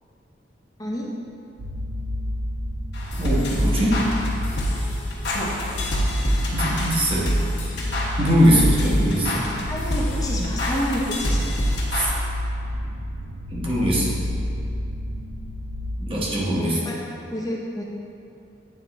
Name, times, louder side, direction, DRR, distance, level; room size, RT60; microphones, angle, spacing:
voice 1, 0.8-1.1 8.5-8.8 9.7-11.6 16.6-17.0 17.3-17.8, equal, 20° left, -3 dB, 0.7 m, -29 dB
sound 1, 1.6-16.0, left 1 dB, 65° right, 0.6 m, -30 dB
sound 2, 2.9-12.1, equal, 65° left, 1.2 m, -26 dB
voice 2, 3.2-4.1 6.5-7.3 8.2-9.4 11.9-12.1 13.5-14.1 16.0-16.8, equal, 30° right, -5 dB, 1.0 m, -21 dB
9.0 x 3.5 x 3.9 m, 2.6 s
head